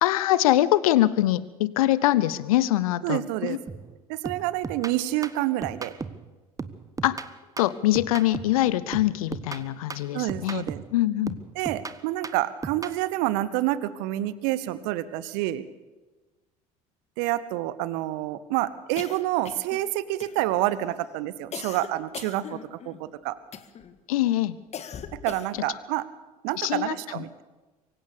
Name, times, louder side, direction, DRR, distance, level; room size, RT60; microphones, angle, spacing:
voice 1, 0.0-3.6 7.0-7.2 7.6-10.6 10.9-11.4 24.1-24.6 26.6-26.9, left 15 dB, 70° left, 18 dB, 0.8 m, -23 dB
voice 2, 3.0-3.6 4.1-5.9 10.1-10.8 11.5-15.7 17.2-23.4 25.2-26.0 26.4-27.4, right 15 dB, 60° right, 16 dB, 1.1 m, -28 dB
sound 1, 3.7-3.9 4.3-6.3 6.6-8.6 8.9-11.0 11.3-13.0, right 4 dB, 15° right, 1.3 m, -37 dB
sound 2, 19.0-19.9 20.2-20.7 21.5-23.0 23.5-23.9 24.7-25.7, left 8 dB, 35° left, 1.7 m, -40 dB
24.5 x 16.5 x 6.9 m, 1.2 s
figure-of-eight pair, 65°, 19 cm